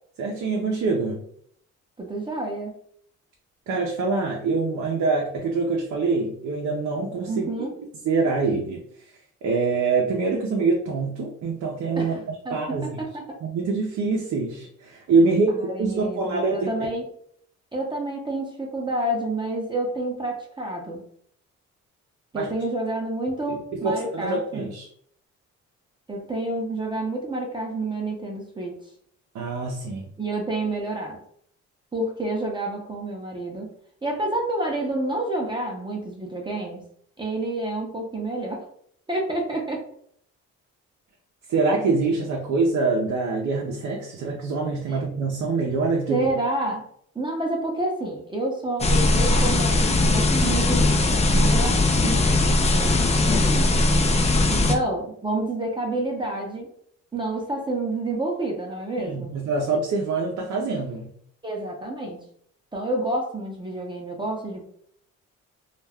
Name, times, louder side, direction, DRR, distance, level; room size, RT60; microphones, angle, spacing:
voice 1, 0.2-1.2 3.7-7.5 8.0-8.8 9.4-12.2 12.5-13.0 13.4-16.7 22.3-22.5 23.5-24.9 29.3-30.1 41.5-46.3 54.4-54.7 59.0-61.1, right 3 dB, 65° right, -1 dB, 0.6 m, -25 dB
voice 2, 2.0-2.7 7.3-7.7 12.0-13.4 15.5-17.0 17.7-21.0 22.3-24.7 26.1-28.8 30.2-31.2 31.9-33.7 34.0-36.8 37.2-38.7 39.1-39.8 44.9-45.0 46.1-46.8 47.1-53.7 54.5-56.7 57.1-59.3 61.4-62.2 62.7-64.7, right 2 dB, 15° right, 0 dB, 0.6 m, -29 dB
sound 1, 48.8-54.8, left 2 dB, 20° left, 0.4 m, -20 dB
2.4 x 2.2 x 3.3 m, 0.64 s
cardioid pair, 90°, 30 cm